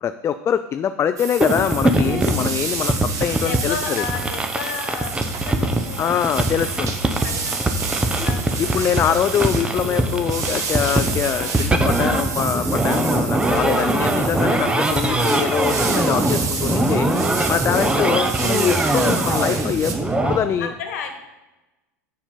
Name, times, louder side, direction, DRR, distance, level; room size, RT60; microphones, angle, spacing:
voice 1, 0.0-4.0 6.0-7.0 8.6-17.1 17.5-19.9 20.2-20.7, left 8 dB, 30° left, 11 dB, 0.4 m, -23 dB
sound 1, 1.2-19.9, right 5 dB, 40° right, 1.7 m, -30 dB
sound 2, 1.4-20.4, right 2 dB, 10° right, 1.0 m, -22 dB
voice 2, 3.4-6.4 6.7-9.0 20.6-21.2, left 6 dB, 75° left, 6 dB, 1.3 m, -34 dB
sound 3, 8.2-17.7, left 2 dB, 5° left, 1.2 m, -40 dB
7.0 x 6.8 x 5.6 m, 1.1 s
hypercardioid pair, 90°, 8 cm